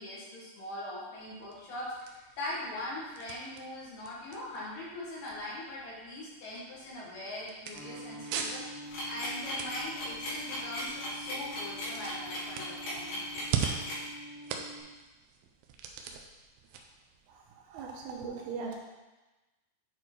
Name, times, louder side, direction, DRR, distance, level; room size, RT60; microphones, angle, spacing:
voice 1, 0.0-13.2, left 1 dB, 55° left, -7 dB, 3.3 m, -41 dB
sound 1, 1.2-18.1, right 7 dB, 90° right, 2.1 m, -42 dB
sound 2, 7.7-14.8, right 1 dB, 10° right, 1.8 m, -46 dB
sound 3, 8.9-14.1, left 1 dB, 80° left, 4.6 m, -37 dB
voice 2, 17.7-18.8, right 5 dB, 75° right, 1 dB, 2.6 m, -38 dB
9.1 x 4.3 x 4.5 m, 1.1 s
omnidirectional pair, 4.9 m